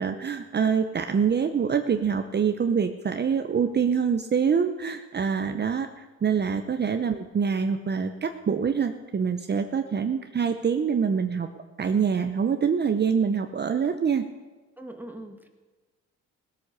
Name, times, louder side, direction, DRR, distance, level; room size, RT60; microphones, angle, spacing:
voice 1, 0.0-11.5 11.8-14.3, right 6 dB, 35° right, 7 dB, 0.8 m, -25 dB
voice 2, 14.8-15.5, right 1 dB, 5° right, 4 dB, 1.6 m, -41 dB
17.5 x 8.3 x 6.7 m, 1.3 s
cardioid pair, 90°, 30 cm